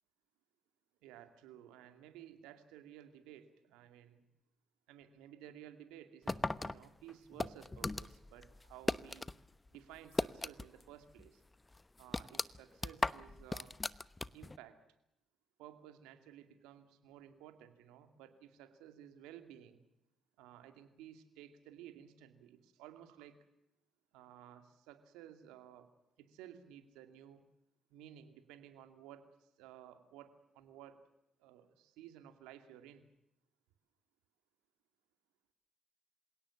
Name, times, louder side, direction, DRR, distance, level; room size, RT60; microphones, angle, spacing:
voice 1, 1.0-4.2 4.9-9.3 9.7-11.4 12.0-13.7 14.3-14.8 15.6-19.8 20.4-23.4 24.1-25.9 26.2-27.4 27.9-31.0 31.4-33.1, right 11 dB, 80° right, 9 dB, 2.4 m, -55 dB
sound 1, 6.3-9.4 9.7-10.9 11.2-11.3 11.7-14.6, left 2 dB, 25° left, 1.0 m, -37 dB
27.0 x 17.5 x 7.2 m, 0.82 s
hypercardioid pair, 45°, 0 cm